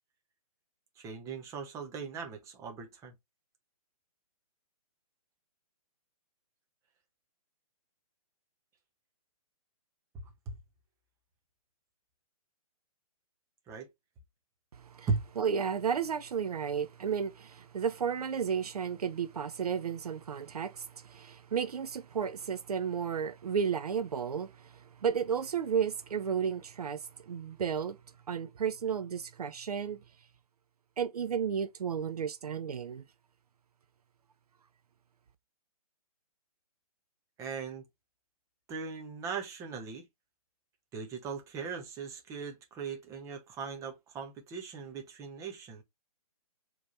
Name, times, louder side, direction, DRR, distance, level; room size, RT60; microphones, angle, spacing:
voice 1, 1.0-3.1 10.5-10.6 13.7-13.9 15.1-15.2 37.4-37.8 38.7-40.1 40.9-45.8, right 5 dB, 15° right, 0.8 m, -38 dB
voice 2, 14.8-15.1 15.4-28.0 28.3-30.0 31.0-33.0, right 7 dB, 75° right, 0.5 m, -33 dB
4.6 x 3.1 x 2.6 m
figure-of-eight pair, 135°, 19 cm